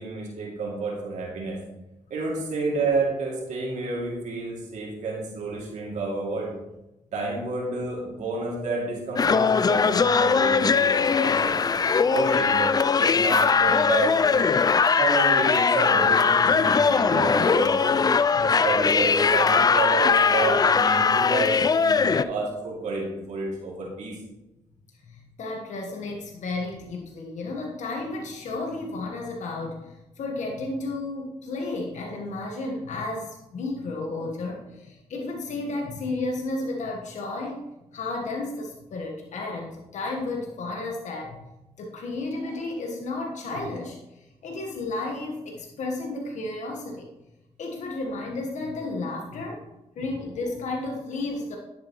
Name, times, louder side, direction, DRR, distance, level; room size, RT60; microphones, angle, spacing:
voice 1, 0.0-1.6 2.1-6.5 7.1-11.6 12.0-12.7 13.0-14.5 15.0-18.0 18.4-24.2 31.4-31.5, right 3 dB, 80° right, -3 dB, 2.6 m, -30 dB
sound 1, 9.2-22.2, left 5 dB, 30° left, 0.3 m, -20 dB
voice 2, 25.1-37.6 37.9-41.4 41.8-47.1 47.6-49.7 49.9-51.6, left 2 dB, 75° left, 1 dB, 1.3 m, -32 dB
10.0 x 7.5 x 3.1 m, 0.93 s
cardioid pair, 60°, 12 cm